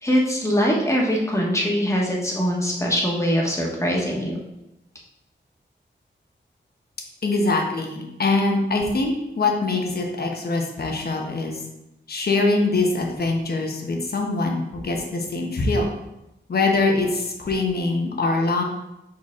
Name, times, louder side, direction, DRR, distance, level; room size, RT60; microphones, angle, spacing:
voice 1, 0.0-4.4, equal, 15° left, -2 dB, 1.4 m, -22 dB
voice 2, 7.2-11.6 12.1-15.9 16.5-18.6, left 3 dB, 55° left, 1 dB, 1.1 m, -23 dB
5.8 x 4.7 x 3.7 m, 0.89 s
wide cardioid pair, 130°, 19 cm